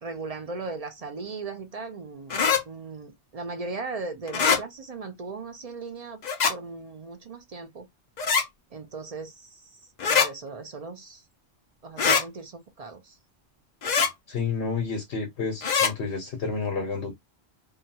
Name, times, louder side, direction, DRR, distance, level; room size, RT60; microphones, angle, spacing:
voice 1, 0.0-6.2 6.5-7.9 8.7-9.7 10.1-11.2 11.8-13.2, right 4 dB, 50° right, 0.5 m, -38 dB
sound 1, 2.3-2.6 4.3-4.6 6.2-6.5 8.2-8.5 10.0-10.3 12.0-12.2 13.8-14.1 15.6-15.9, left 6 dB, 50° left, 0.6 m, -22 dB
voice 2, 14.3-17.1, left 4 dB, 75° left, 1.0 m, -30 dB
2.8 x 2.2 x 2.7 m
omnidirectional pair, 1.1 m